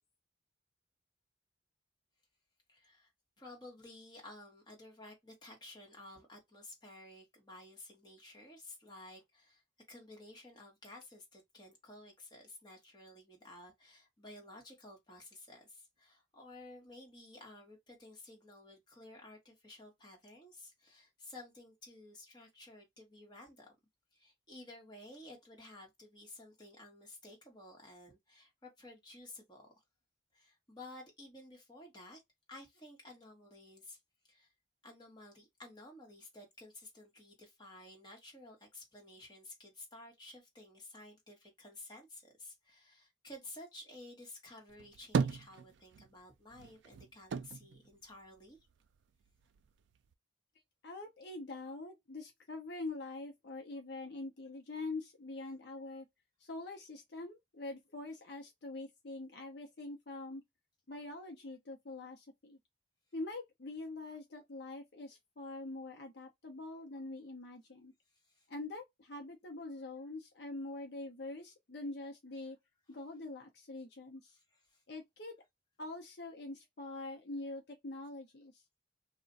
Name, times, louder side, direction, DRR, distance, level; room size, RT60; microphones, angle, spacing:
voice 1, 2.7-3.1 3.4-9.6 9.9-23.7 24.1-29.7 30.3-32.2 32.5-34.0 34.3-34.5 34.8-48.7 68.1-68.5 74.7-74.8, left 1 dB, 25° left, 1.1 m, -53 dB
sound 1, 44.7-46.2 46.5-48.9 49.2-50.1, right 5 dB, 70° right, 0.3 m, -37 dB
voice 2, 50.8-56.1 56.4-60.4 60.9-62.6 63.1-67.9 68.5-72.6 72.9-74.4 74.9-75.3 75.8-78.6, left 2 dB, 60° left, 0.6 m, -44 dB
2.4 x 2.1 x 3.8 m
head